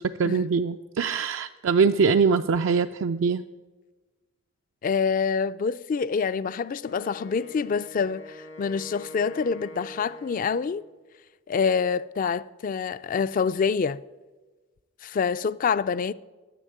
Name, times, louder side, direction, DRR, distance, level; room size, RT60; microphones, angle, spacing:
voice 1, 0.0-3.4, right 5 dB, 65° right, 0.4 m, -23 dB
voice 2, 4.8-10.8 11.5-14.0 15.0-16.1, left 5 dB, 40° left, 0.3 m, -26 dB
Wind instrument woodwind instrument, 6.8-10.8, left 2 dB, 90° left, 2.9 m, -44 dB
10.0 x 7.2 x 9.0 m
head